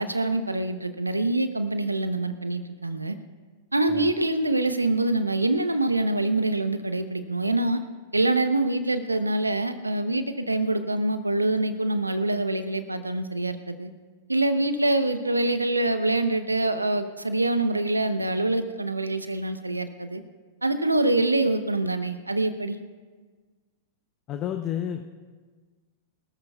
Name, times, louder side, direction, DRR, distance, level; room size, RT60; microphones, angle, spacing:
voice 1, 0.0-3.1 3.7-7.8 8.1-13.9 14.3-20.2 20.6-22.8, right 2 dB, 85° right, 10 dB, 0.9 m, -25 dB
voice 2, 24.3-25.0, left 10 dB, 35° left, 6 dB, 0.8 m, -30 dB
24.0 x 14.0 x 2.4 m, 1.5 s
figure-of-eight pair, 95°, 0 cm